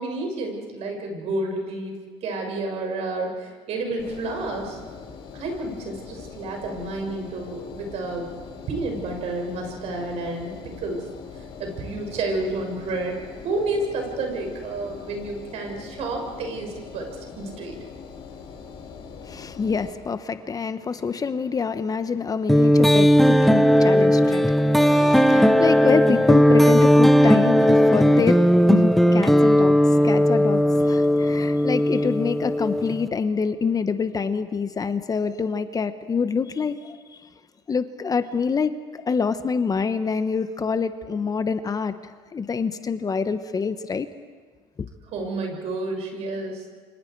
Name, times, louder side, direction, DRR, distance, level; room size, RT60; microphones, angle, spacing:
voice 1, 0.0-4.8 5.3-8.3 8.7-11.1 11.6-13.2 13.4-17.1 17.4-17.7 45.1-46.6, right 2 dB, 65° right, 2 dB, 6.5 m, -30 dB
Engine, 4.0-19.9, left 5 dB, 55° left, 7.2 m, -42 dB
voice 2, 19.2-28.4 28.7-37.0 37.7-44.1 44.8-44.9, left 5 dB, 30° left, 10 dB, 1.2 m, -26 dB
sound 1, 22.5-33.1, equal, ahead, 1.1 m, -17 dB
29.5 x 25.5 x 4.8 m, 1.5 s
supercardioid pair, 85°, 12 cm